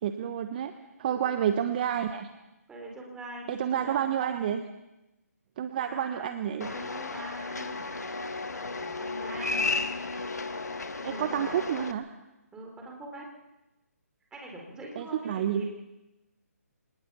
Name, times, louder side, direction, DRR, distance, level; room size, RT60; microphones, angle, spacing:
voice 1, 0.0-0.7 1.0-2.3 3.5-4.6 5.6-6.7 11.2-12.1 15.0-15.6, right 9 dB, 35° right, 8 dB, 1.1 m, -29 dB
voice 2, 1.0-1.3 2.7-4.2 5.8-6.3 6.6-7.9 8.8-9.6 11.0-11.6 12.5-13.3 14.3-15.6, right 1 dB, 10° right, 0 dB, 4.0 m, -43 dB
sound 1, 6.6-11.9, left 3 dB, 85° left, 1.7 m, -33 dB
26.0 x 19.0 x 5.6 m, 0.99 s
figure-of-eight pair, 155°, 9 cm